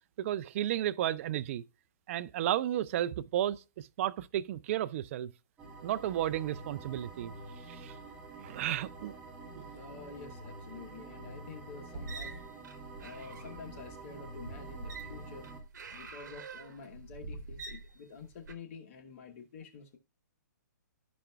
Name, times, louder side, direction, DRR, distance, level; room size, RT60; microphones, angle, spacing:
voice 1, 0.2-1.6 2.1-5.3 5.8-7.3 7.7-7.9 8.4-9.2 9.5-9.6, right 12 dB, 45° right, 0.4 m, -33 dB
sound 1, 5.6-15.6, right 3 dB, 15° right, 2.0 m, -48 dB
voice 2, 9.7-12.4 13.0-15.5 15.9-20.0, left 5 dB, 45° left, 1.2 m, -48 dB
sound 2, 11.9-18.5, right 3 dB, 70° right, 1.1 m, -45 dB
13.0 x 5.1 x 2.3 m
hypercardioid pair, 140°, 10 cm